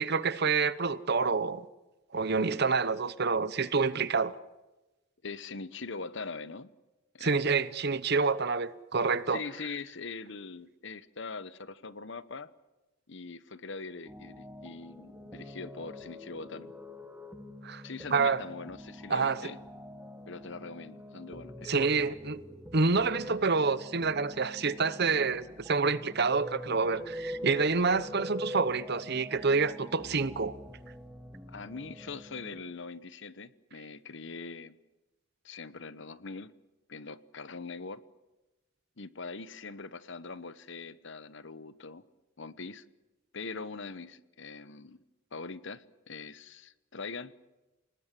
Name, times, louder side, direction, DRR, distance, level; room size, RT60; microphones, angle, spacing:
voice 1, 0.0-1.6 2.1-4.3 7.2-9.4 17.6-17.8 18.1-18.4 19.1-19.5 21.6-22.4 22.7-30.5, right 4 dB, 55° right, 1.0 m, -28 dB
voice 2, 5.2-6.7 7.1-7.5 9.3-12.5 13.1-16.7 17.8-19.6 20.3-22.1 31.5-34.8 35.4-36.5 36.9-38.0 39.0-42.0 42.4-42.8 43.3-45.0 45.3-47.3, left 4 dB, 65° left, 1.1 m, -42 dB
sound 1, 14.1-32.6, left 1 dB, 10° right, 1.9 m, -45 dB
29.0 x 19.5 x 7.6 m
head